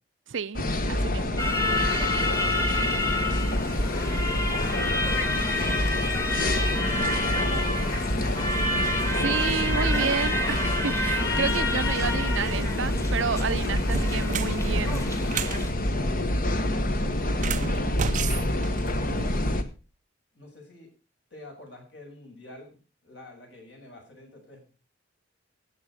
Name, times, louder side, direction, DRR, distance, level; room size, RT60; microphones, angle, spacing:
voice 1, 0.3-1.4 9.1-15.0, right 5 dB, 75° right, 14 dB, 0.6 m, -30 dB
sound 1, 0.5-19.6, left 1 dB, 45° left, 1.3 m, -27 dB
sound 2, 1.4-15.7, left 1 dB, 15° left, 1.7 m, -30 dB
voice 2, 2.4-3.3 4.0-4.8 5.7-8.0 15.8-19.5 20.3-20.9 21.3-24.6, left 2 dB, 60° left, 1 dB, 6.6 m, -46 dB
sound 3, 13.0-13.3 13.8-15.6 17.3-19.4, right 6 dB, 40° right, 0.5 m, -33 dB
14.5 x 9.0 x 5.0 m, 0.35 s
head